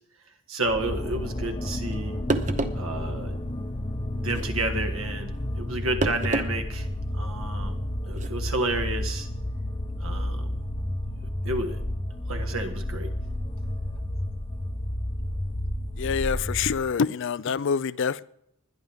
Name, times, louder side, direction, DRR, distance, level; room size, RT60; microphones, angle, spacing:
voice 1, 0.5-2.2 2.7-3.4 4.1-6.9 7.1-7.8 8.1-9.3 10.0-10.6 11.4-11.8 12.3-13.1, right 2 dB, 65° right, 1.6 m, -31 dB
sound 1, 0.6-16.9, left 1 dB, 25° left, 0.8 m, -31 dB
sound 2, 1.9-2.0 2.3-2.9 4.3-4.5 6.0-6.5 6.9-7.0 8.1-8.3, right 2 dB, 35° right, 0.8 m, -28 dB
voice 2, 16.0-18.2, left 6 dB, 60° left, 0.4 m, -26 dB
20.5 x 10.5 x 3.5 m
head